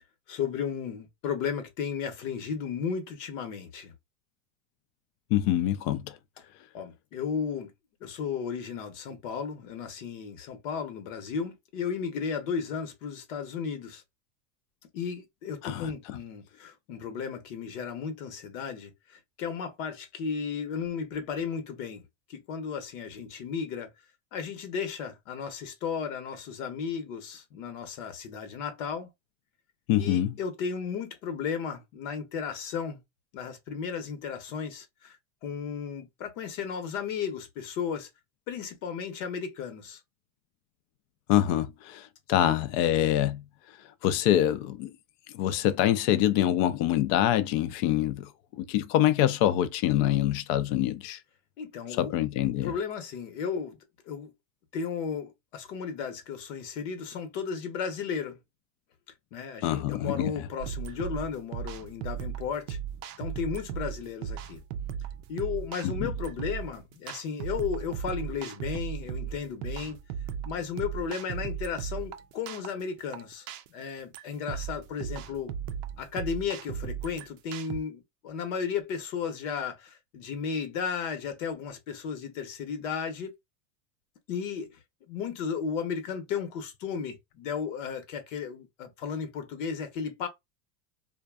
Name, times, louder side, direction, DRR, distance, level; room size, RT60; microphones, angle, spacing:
voice 1, 0.3-3.9 6.7-7.7 8.0-14.0 14.9-22.0 22.3-23.9 24.3-29.1 30.0-33.0 33.3-35.2 35.4-38.1 38.5-40.0 42.4-42.6 51.6-52.1 52.6-53.8 54.1-54.3 54.7-58.4 59.3-62.8 63.2-64.6 65.3-70.0 70.4-75.5 76.0-83.3 84.3-84.8 85.1-90.3, left 6 dB, 65° left, 1.0 m, -34 dB
voice 2, 5.3-6.2 15.6-16.2 29.9-30.3 41.3-43.4 44.0-44.9 45.3-51.2 51.9-52.7 59.6-60.3 65.8-65.9, left 12 dB, 50° left, 0.5 m, -25 dB
sound 1, 60.6-77.8, right 8 dB, 50° right, 0.4 m, -37 dB
2.5 x 2.2 x 2.2 m
supercardioid pair, 135°, 41 cm